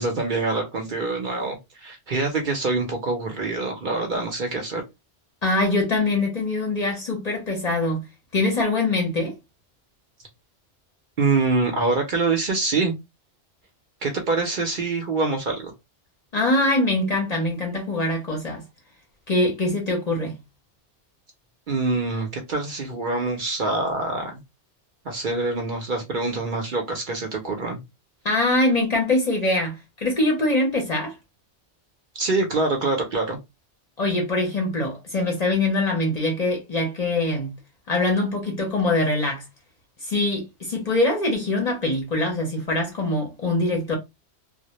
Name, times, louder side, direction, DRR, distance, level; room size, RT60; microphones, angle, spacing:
voice 1, 0.0-4.8 11.2-12.9 14.0-15.7 21.7-24.4 25.0-27.8 32.1-33.4, right 3 dB, 55° right, 0.7 m, -25 dB
voice 2, 5.4-8.0 8.3-9.3 16.3-18.6 19.3-20.4 28.2-31.1 34.0-37.5 37.9-39.4 40.0-44.0, left 2 dB, 45° left, 0.6 m, -23 dB
2.1 x 2.1 x 2.8 m
omnidirectional pair, 1.2 m